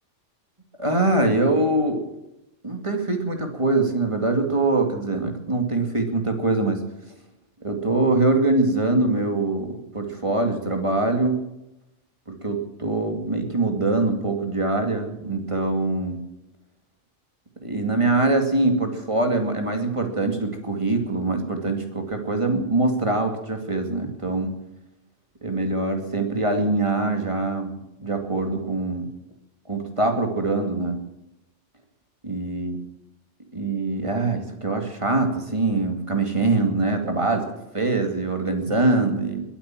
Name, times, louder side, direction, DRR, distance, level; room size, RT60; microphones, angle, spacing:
voice 1, 0.8-2.0 2.6-6.8 7.6-11.4 12.3-16.2 17.6-24.5 25.4-27.7 28.0-29.1 29.7-31.0 32.2-32.8 33.5-37.5 37.7-39.4, right 2 dB, 25° right, 4 dB, 2.4 m, -23 dB
21.5 x 9.0 x 7.6 m, 0.90 s
omnidirectional pair, 1.2 m